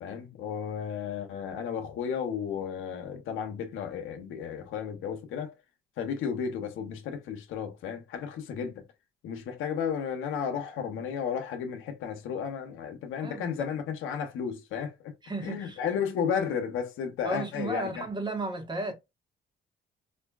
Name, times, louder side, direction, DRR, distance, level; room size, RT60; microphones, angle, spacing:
voice 1, 0.0-5.5 6.0-8.8 9.2-15.1 15.4-18.0, left 7 dB, 90° left, 0.9 m, -33 dB
voice 2, 13.2-13.7 15.2-15.8 17.2-18.9, right 2 dB, 20° right, 1.3 m, -34 dB
4.3 x 2.6 x 2.3 m
cardioid pair, 90°, 20 cm